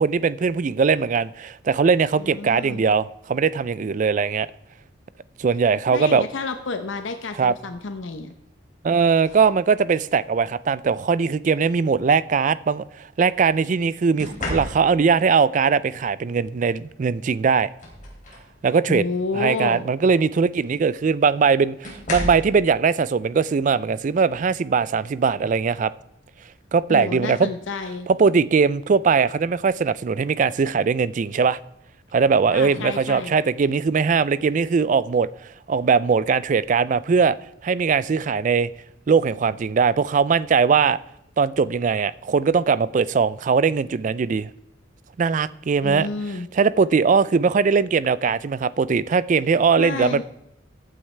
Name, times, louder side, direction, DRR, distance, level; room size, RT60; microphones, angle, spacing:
voice 1, 0.0-4.5 5.4-6.3 7.4-7.5 8.8-17.7 18.6-19.0 19.3-25.9 26.7-27.5 28.1-31.6 32.1-35.3 35.7-37.4 37.6-38.7 39.1-41.0 41.4-44.5 45.2-46.1 46.5-50.2, right 5 dB, 40° right, 0.3 m, -20 dB
voice 2, 2.2-2.8 5.9-8.3 18.9-19.8 26.9-28.1 32.5-33.4 45.8-46.5 49.8-50.2, left 3 dB, 75° left, 0.7 m, -30 dB
sound 1, 9.2-9.6 10.9-11.1 14.2-15.2 16.9-17.0 17.5-18.6 19.0-19.3 20.7-20.8 21.8-22.6 24.3-24.5 24.9-25.3, left 1 dB, 40° left, 3.1 m, -33 dB
14.5 x 9.1 x 3.3 m
head